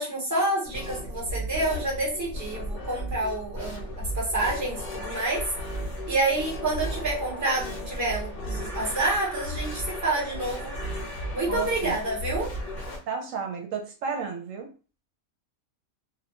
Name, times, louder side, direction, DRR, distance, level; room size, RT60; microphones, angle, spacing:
voice 1, 0.0-5.4 6.1-10.7 11.3-12.5, right 2 dB, 15° right, -4 dB, 0.8 m, -28 dB
sound 1, 0.6-13.0, equal, 40° left, 0.8 m, -35 dB
voice 2, 11.5-12.0 13.1-14.7, right 6 dB, 75° right, 2 dB, 0.9 m, -32 dB
2.4 x 2.1 x 2.9 m, 0.35 s
omnidirectional pair, 1.4 m